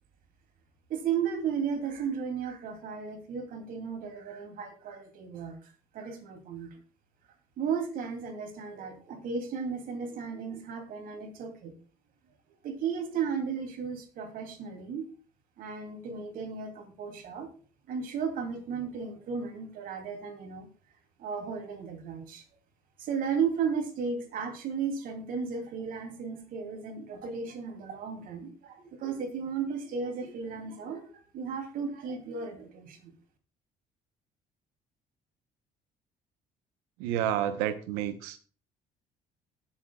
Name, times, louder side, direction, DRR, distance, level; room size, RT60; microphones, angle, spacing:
voice 1, 0.9-5.6 5.9-6.7 7.6-11.7 12.6-15.1 15.6-17.5 17.9-20.7 21.2-22.4 23.0-31.1 31.3-33.1, right 6 dB, 70° right, 5 dB, 2.8 m, -34 dB
voice 2, 37.0-38.4, right 11 dB, 85° right, 11 dB, 0.9 m, -30 dB
20.0 x 7.3 x 2.3 m, 0.39 s
supercardioid pair, 70°, 15 cm